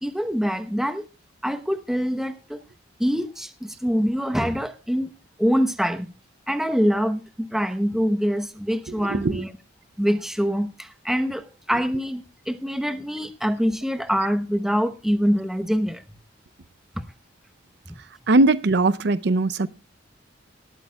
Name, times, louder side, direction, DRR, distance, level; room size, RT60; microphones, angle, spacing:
voice 1, 0.0-1.1 1.4-2.6 3.0-5.1 5.4-6.1 6.5-9.5 10.0-16.0, equal, ahead, 0.9 m, -24 dB
voice 2, 9.0-9.4 18.3-19.7, right 2 dB, 60° right, 0.6 m, -20 dB
19.0 x 13.0 x 2.3 m
head